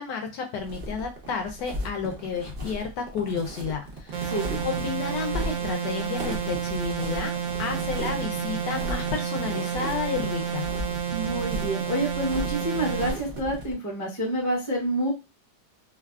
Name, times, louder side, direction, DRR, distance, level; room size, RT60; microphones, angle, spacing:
voice 1, 0.0-4.3 4.6-7.3 7.6-10.7, left 5 dB, 75° left, 3 dB, 1.2 m, -31 dB
sound 1, 0.6-13.7, right 1 dB, 80° right, 0.4 m, -36 dB
sound 2, 4.1-13.1, right 8 dB, 65° right, 1.0 m, -30 dB
voice 2, 11.1-15.1, right 1 dB, 20° left, -4 dB, 0.5 m, -28 dB
3.3 x 2.3 x 2.3 m, 0.26 s
omnidirectional pair, 2.0 m